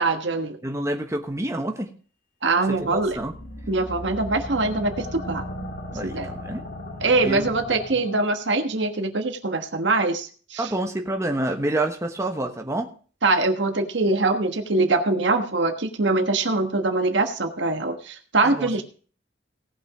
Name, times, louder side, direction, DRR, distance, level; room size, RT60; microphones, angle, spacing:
voice 1, 0.0-0.6 2.4-3.2 3.7-5.4 6.0-6.3 7.0-10.7 13.2-18.8, right 3 dB, 75° right, 7 dB, 1.3 m, -23 dB
voice 2, 0.6-1.9 2.7-3.3 5.9-6.6 7.2-7.4 10.6-12.9 18.4-18.7, right 1 dB, 15° right, 4 dB, 1.2 m, -28 dB
sound 1, 2.7-8.3, equal, 60° left, 2.2 m, -36 dB
17.5 x 5.9 x 4.9 m, 0.41 s
head